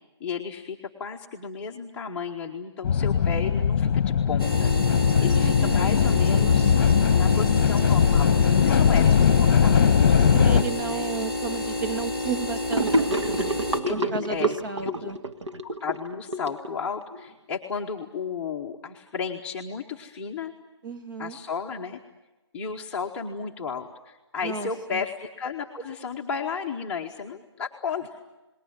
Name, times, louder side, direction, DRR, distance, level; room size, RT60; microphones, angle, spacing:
voice 1, 0.2-6.8 7.1-9.9 10.8-11.1 13.8-14.5 14.8-15.1 15.6-20.5 21.2-22.0 22.5-28.2, left 6 dB, 10° left, -3 dB, 0.9 m, -33 dB
sound 1, 2.8-10.6, left 7 dB, 30° left, 1.3 m, -20 dB
sound 2, 4.4-13.8, left 2 dB, 10° right, 2.7 m, -30 dB
voice 2, 5.2-6.6 10.3-13.3 13.9-15.2 20.8-21.4 24.4-25.0, right 6 dB, 45° right, 5 dB, 1.8 m, -33 dB
Gurgling / Sink (filling or washing), 12.7-17.2, right 2 dB, 90° right, 1.7 m, -28 dB
29.0 x 20.0 x 9.2 m, 1.1 s
hypercardioid pair, 165°, 15 cm